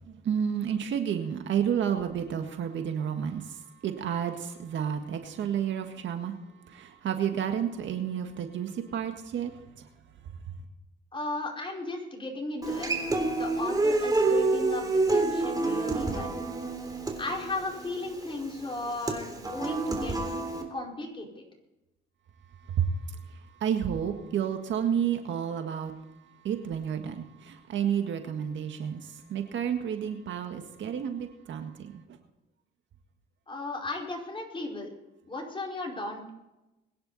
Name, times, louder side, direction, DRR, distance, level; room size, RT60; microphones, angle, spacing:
voice 1, 0.1-3.6 3.8-6.3 6.7-9.5 22.7-22.9 23.6-25.9 26.4-31.9, right 8 dB, 70° right, 6 dB, 1.7 m, -30 dB
voice 2, 11.1-13.1 13.4-16.4 17.2-20.1 20.7-21.4 33.5-34.9 35.3-36.3, left 2 dB, 25° left, 0 dB, 4.9 m, -36 dB
Human voice / Acoustic guitar, 12.6-20.6, right 3 dB, 20° right, 3.5 m, -28 dB
22.0 x 10.5 x 4.1 m, 0.97 s
cardioid pair, 90°, 20 cm